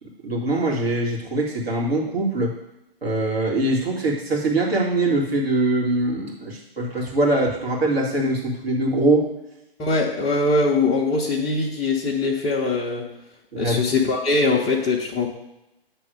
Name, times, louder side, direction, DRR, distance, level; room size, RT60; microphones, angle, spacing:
voice 1, 0.2-2.5 3.0-9.3 13.5-13.9, right 2 dB, 80° right, -3 dB, 2.3 m, -22 dB
voice 2, 9.8-13.1 13.6-15.3, left 3 dB, 10° left, -7 dB, 0.4 m, -22 dB
8.3 x 3.4 x 6.3 m, 0.87 s
figure-of-eight pair, 125°, 30 cm